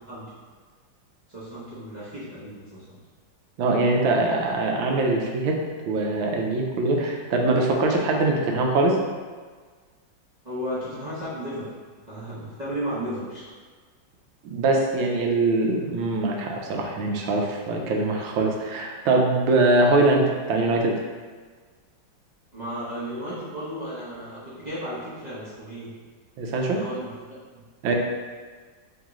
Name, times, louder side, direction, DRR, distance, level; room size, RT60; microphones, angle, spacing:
voice 1, 1.3-3.0 10.4-11.7 12.1-13.5 22.5-25.9 26.7-27.1, equal, 40° right, -11 dB, 0.6 m, -34 dB
voice 2, 3.6-5.5 5.9-9.0 14.4-21.0 26.4-26.8 27.8-27.9, right 2 dB, 85° right, 0 dB, 1.4 m, -22 dB
3.7 x 3.6 x 3.0 m, 1.5 s
omnidirectional pair, 2.1 m